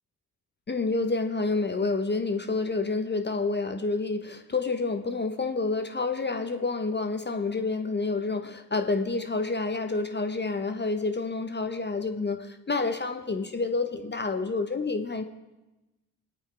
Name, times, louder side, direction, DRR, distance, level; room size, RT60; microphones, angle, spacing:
voice 1, 0.7-15.2, left 3 dB, 25° left, 7 dB, 0.9 m, -29 dB
20.0 x 8.6 x 3.4 m, 1.0 s
hypercardioid pair, 45°, 43 cm